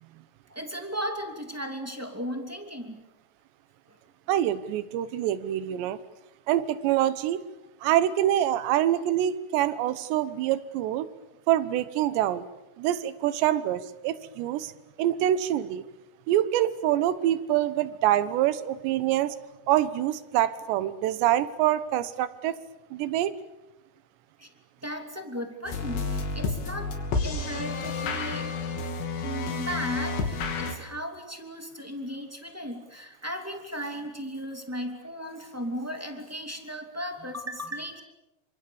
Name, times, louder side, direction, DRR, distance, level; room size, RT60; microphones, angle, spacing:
voice 1, 0.5-3.0 24.4-24.5 24.8-26.9 27.2-28.5 29.2-38.0, equal, 5° right, 4 dB, 1.5 m, -36 dB
voice 2, 4.3-6.0 6.5-7.4 7.8-11.1 11.5-12.4 12.8-14.7 15.0-15.8 16.3-19.3 19.7-22.6 22.9-23.3, right 12 dB, 75° right, 14 dB, 3.3 m, -25 dB
sound 1, 25.7-30.8, left 3 dB, 75° left, 5.0 m, -30 dB
29.0 x 26.0 x 7.1 m, 0.99 s
omnidirectional pair, 5.2 m